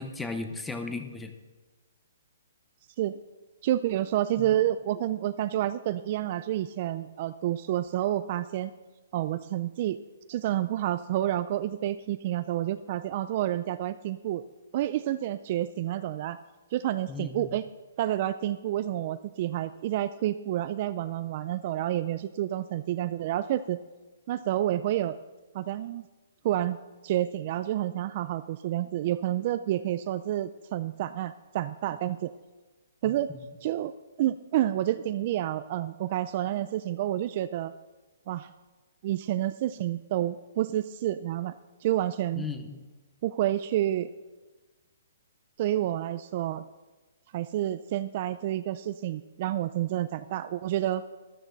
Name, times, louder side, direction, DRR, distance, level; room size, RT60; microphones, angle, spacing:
voice 1, 0.0-1.3 4.4-4.5 17.1-17.5 42.4-42.8, left 3 dB, 5° left, 7 dB, 0.7 m, -35 dB
voice 2, 3.6-8.7 9.1-10.0 10.3-14.4 14.7-16.4 16.7-17.7 18.0-23.8 24.3-25.2 25.5-26.0 26.4-26.8 27.0-32.3 33.0-33.3 33.6-33.9 34.2-37.7 38.3-38.5 39.0-41.6 41.8-42.5 43.2-44.1 45.6-46.6 47.3-51.0, right 13 dB, 35° right, 12 dB, 0.3 m, -29 dB
13.5 x 12.5 x 4.0 m, 1.2 s
hypercardioid pair, 170°, 0 cm